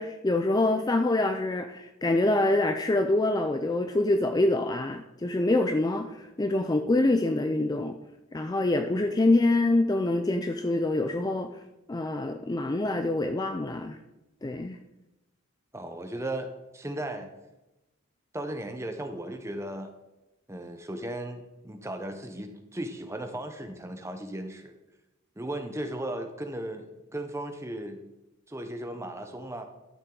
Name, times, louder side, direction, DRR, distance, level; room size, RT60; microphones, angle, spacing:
voice 1, 0.0-7.9 8.3-11.5 11.9-14.0 14.4-14.8, left 2 dB, 20° left, 7 dB, 0.4 m, -25 dB
voice 2, 15.7-17.3 18.3-19.9 20.5-24.7 25.4-28.0 28.5-29.6, right 1 dB, 15° right, 6 dB, 0.9 m, -36 dB
12.0 x 7.3 x 3.9 m, 0.98 s
head